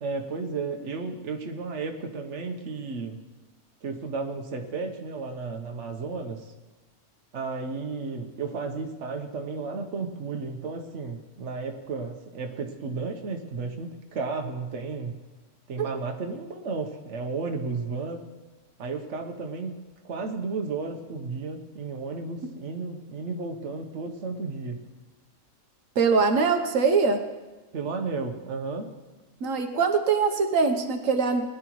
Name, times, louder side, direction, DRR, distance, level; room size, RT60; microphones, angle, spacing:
voice 1, 0.0-3.2 3.8-6.4 7.3-15.2 15.7-18.2 18.8-19.8 20.0-24.8 27.7-28.9, right 4 dB, 65° right, 4 dB, 1.3 m, -33 dB
voice 2, 26.0-27.2 29.4-31.4, right 4 dB, 85° right, 5 dB, 1.3 m, -22 dB
20.5 x 10.5 x 3.1 m, 1.2 s
omnidirectional pair, 1.3 m